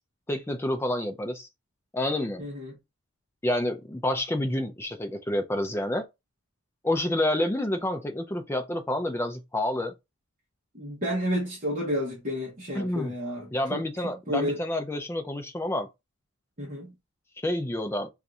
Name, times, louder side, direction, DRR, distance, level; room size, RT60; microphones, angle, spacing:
voice 1, 0.3-1.5 1.9-2.4 3.4-6.0 6.8-9.9 12.7-13.1 13.5-15.9 17.4-18.1, left 1 dB, 10° left, 0.3 m, -28 dB
voice 2, 2.4-2.8 10.7-14.6 16.6-16.9, equal, 35° right, 0.9 m, -31 dB
2.6 x 2.4 x 4.0 m
head